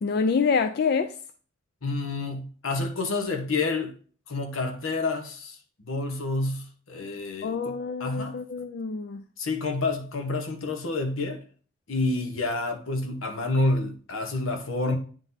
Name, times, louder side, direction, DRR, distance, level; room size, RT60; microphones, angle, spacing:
voice 1, 0.0-1.1 7.4-9.2, left 5 dB, 50° left, 0.3 m, -26 dB
voice 2, 1.8-3.9 4.3-5.6 5.8-8.3 9.4-11.4 11.9-15.0, left 2 dB, 85° left, 1.0 m, -29 dB
9.0 x 3.9 x 2.7 m
head